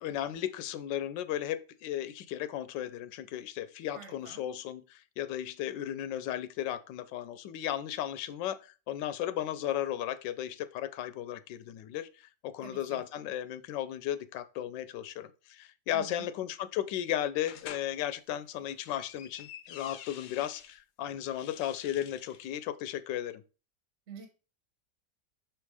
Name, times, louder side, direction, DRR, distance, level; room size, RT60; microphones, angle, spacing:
voice 1, 0.0-23.4, left 11 dB, 85° left, 1.3 m, -35 dB
voice 2, 3.9-4.4 12.6-13.0 15.9-16.3 24.1-24.3, right 7 dB, 45° right, 1.4 m, -47 dB
sound 1, 17.4-17.9 18.5-20.8 21.2-22.5, left 9 dB, 65° left, 0.8 m, -48 dB
6.3 x 3.5 x 4.7 m
omnidirectional pair, 1.9 m